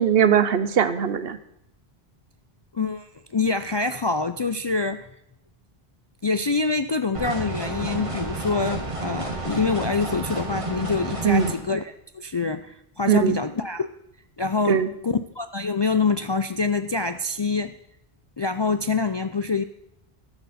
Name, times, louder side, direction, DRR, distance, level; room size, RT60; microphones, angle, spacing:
voice 1, 0.0-1.4 11.2-11.5 13.1-13.4 14.7-14.9, right 8 dB, 70° right, 13 dB, 1.0 m, -20 dB
voice 2, 2.7-5.1 6.2-13.9 14.4-17.7 18.4-19.6, left 4 dB, 45° left, 9 dB, 0.3 m, -25 dB
sound 1, 7.1-11.5, right 2 dB, 30° right, 2.2 m, -31 dB
14.0 x 12.0 x 4.2 m, 0.77 s
omnidirectional pair, 1.0 m